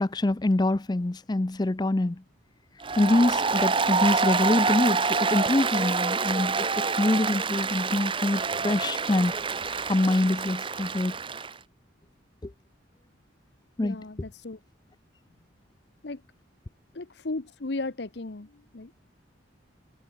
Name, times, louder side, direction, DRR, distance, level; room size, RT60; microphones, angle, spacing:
voice 1, 0.0-2.2 3.0-9.3 9.9-11.2 12.4-12.5 13.8-14.0, left 2 dB, 20° left, 0.4 m, -25 dB
Applause, 2.8-11.5, right 4 dB, 25° right, 1.0 m, -27 dB
voice 2, 13.8-14.6 16.0-16.2 16.9-18.9, left 2 dB, 60° left, 0.9 m, -35 dB
head